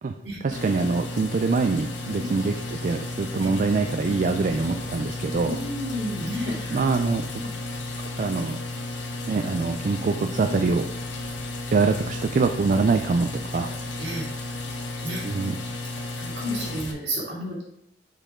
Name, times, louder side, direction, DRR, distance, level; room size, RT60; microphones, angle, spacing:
voice 1, 0.4-5.6 6.7-7.2 8.2-8.6 9.2-10.8 11.7-13.7 15.2-15.6, right 4 dB, 45° right, 6 dB, 0.3 m, -24 dB
sound 1, 0.5-16.9, left 2 dB, 80° left, 1.0 m, -33 dB
voice 2, 5.4-6.9 7.4-7.5 10.4-10.5 14.0-14.6 15.0-15.3 16.2-17.6, equal, 65° right, -3 dB, 2.4 m, -32 dB
6.7 x 5.0 x 3.6 m, 0.75 s
head